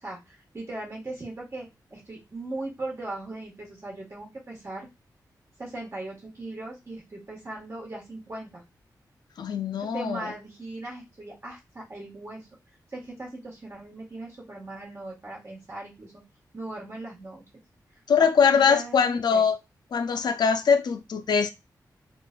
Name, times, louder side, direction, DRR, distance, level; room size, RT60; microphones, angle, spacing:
voice 1, 0.0-4.9 5.6-8.6 9.8-12.5 12.9-16.2 16.5-17.4 18.2-18.3 18.5-19.4, right 2 dB, 40° right, 1.6 m, -39 dB
voice 2, 9.4-10.3 18.1-19.6 19.9-21.5, left 6 dB, 70° left, 0.4 m, -22 dB
3.8 x 2.4 x 2.4 m
wide cardioid pair, 95°, 7 cm